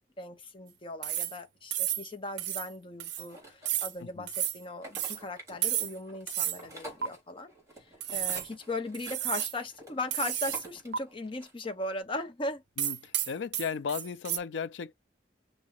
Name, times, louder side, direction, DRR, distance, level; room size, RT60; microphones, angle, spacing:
voice 1, 0.2-7.5 8.1-12.6, left 2 dB, 30° left, 0.8 m, -38 dB
sound 1, 1.0-1.4 1.7-2.1 2.4-2.7 3.0-3.3 3.6-3.9 4.3-4.6 4.9-5.2 5.6-6.0 6.3-6.6 7.0-7.1 8.0-8.5 8.9-9.6 10.1-10.7 10.9-11.0 12.8-14.4, right 12 dB, 70° right, 0.5 m, -32 dB
sound 2, 3.2-4.1 4.6-11.7, right 1 dB, 20° right, 3.5 m, -49 dB
voice 2, 12.8-14.9, left 6 dB, 80° left, 0.4 m, -35 dB
5.9 x 2.7 x 3.1 m
head